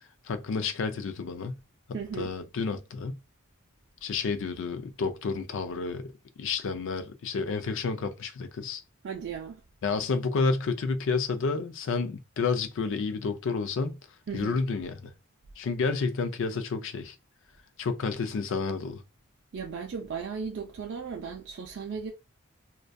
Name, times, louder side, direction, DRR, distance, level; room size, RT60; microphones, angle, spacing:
voice 1, 0.2-1.6 2.2-3.2 4.0-6.1 6.4-8.8 9.8-14.0 14.3-15.1 15.6-17.2 17.8-19.0, left 4 dB, 60° left, 0.4 m, -30 dB
voice 2, 1.9-2.3 9.0-9.6 14.3-14.6 19.5-22.1, right 6 dB, 55° right, 0.4 m, -36 dB
2.5 x 2.2 x 2.2 m
head